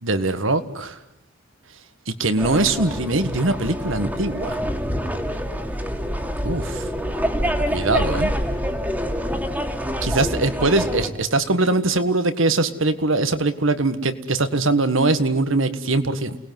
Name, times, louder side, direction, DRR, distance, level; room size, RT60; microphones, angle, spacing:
voice 1, 0.0-1.0 2.1-4.6 6.4-6.9 7.7-8.3 10.0-16.4, right 2 dB, 70° right, 11 dB, 1.7 m, -22 dB
sound 1, 2.4-11.1, equal, 10° right, 2.4 m, -26 dB
29.0 x 19.5 x 9.5 m, 0.81 s
head